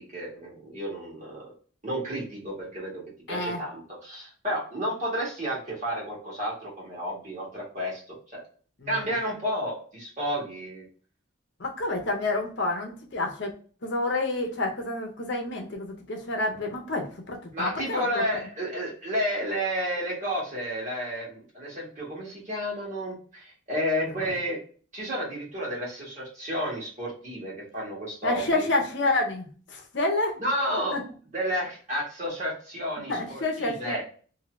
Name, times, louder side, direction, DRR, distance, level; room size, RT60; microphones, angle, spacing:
voice 1, 0.0-1.5 1.8-3.0 3.3-8.4 8.9-10.8 17.5-24.6 24.9-28.6 30.4-31.0 31.3-34.0, equal, 35° right, -4 dB, 1.4 m, -31 dB
voice 2, 3.3-3.6 11.6-13.5 13.8-18.2 24.2-24.3 28.2-30.3 30.9-31.0 33.1-34.0, left 2 dB, 60° left, 2 dB, 0.7 m, -28 dB
2.7 x 2.7 x 3.0 m, 0.41 s
head